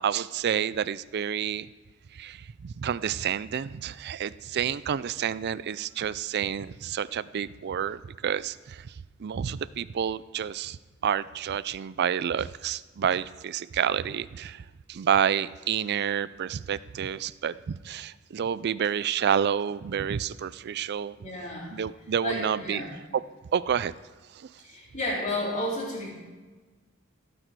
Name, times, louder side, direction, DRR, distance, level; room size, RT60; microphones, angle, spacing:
voice 1, 0.0-1.7 2.1-8.9 9.2-10.8 11.0-14.6 14.9-21.2 21.7-22.8 23.5-23.9, right 8 dB, 50° right, 17 dB, 0.4 m, -29 dB
voice 2, 21.2-21.7 22.2-22.9 24.6-26.1, left 1 dB, 35° left, -5 dB, 4.1 m, -32 dB
16.5 x 9.0 x 4.7 m, 1.3 s
head